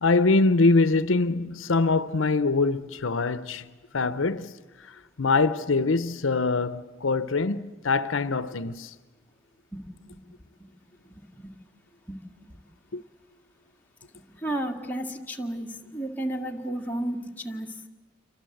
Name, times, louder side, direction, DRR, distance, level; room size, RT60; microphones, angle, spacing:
voice 1, 0.0-4.5 4.8-4.9 5.2-8.9 12.9-13.0, left 3 dB, 80° left, 0.8 m, -24 dB
voice 2, 9.7-10.2 10.6-10.7 11.1-11.5 12.1-12.6 14.1-17.7, right 1 dB, 10° left, 2.0 m, -33 dB
28.5 x 24.0 x 7.9 m
head